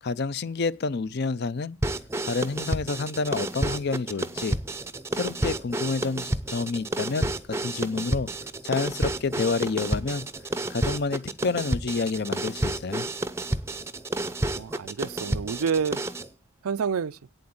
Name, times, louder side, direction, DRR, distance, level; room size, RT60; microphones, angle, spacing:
voice 1, 0.0-1.8 2.2-4.6 5.1-7.3 7.6-8.3 8.6-10.2 10.7-13.1, left 4 dB, 45° left, 0.5 m, -29 dB
sound 1, 1.8-16.3, right 1 dB, 10° right, 0.5 m, -30 dB
voice 2, 14.6-16.0 16.6-17.2, right 6 dB, 80° right, 0.5 m, -28 dB
8.7 x 7.8 x 8.6 m
head